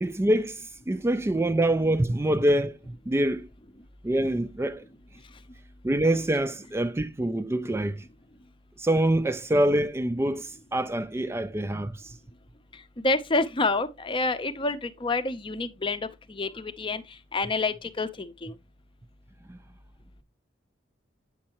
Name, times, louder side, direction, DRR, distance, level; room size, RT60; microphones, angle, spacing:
voice 1, 0.0-2.8 3.1-3.5 4.0-4.8 5.8-8.0 8.8-12.2 19.5-19.6, right 1 dB, 15° right, 0.3 m, -25 dB
voice 2, 13.0-17.0 17.3-18.5, left 3 dB, 25° left, 0.6 m, -28 dB
8.5 x 6.6 x 2.9 m
head